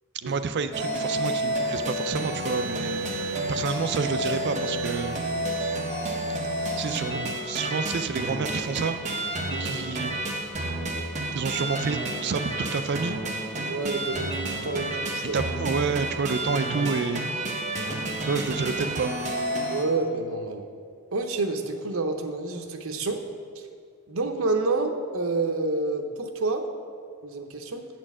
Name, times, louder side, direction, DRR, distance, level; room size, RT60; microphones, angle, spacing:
voice 1, 0.2-5.2 6.8-8.9 9.5-10.2 11.3-13.2 15.3-17.2 18.2-19.2, right 5 dB, 50° right, 10 dB, 0.4 m, -29 dB
sound 1, 0.7-19.8, right 1 dB, 35° right, 1.0 m, -30 dB
voice 2, 13.7-15.4 19.7-20.6 21.1-23.2 24.1-26.7 27.2-27.9, right 3 dB, 70° right, 5 dB, 0.8 m, -28 dB
8.8 x 4.4 x 7.2 m, 2.2 s
head